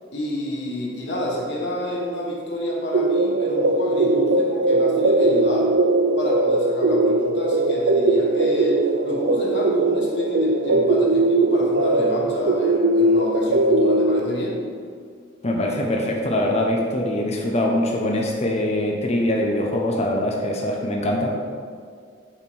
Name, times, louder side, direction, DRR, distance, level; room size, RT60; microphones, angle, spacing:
voice 1, 0.1-5.7 6.2-14.6, equal, 65° left, -3 dB, 1.7 m, -28 dB
sound 1, 2.9-14.2, right 2 dB, 80° right, 0.5 m, -20 dB
voice 2, 15.4-21.3, left 1 dB, 35° left, 0 dB, 0.7 m, -23 dB
8.6 x 4.4 x 4.6 m, 2.1 s
head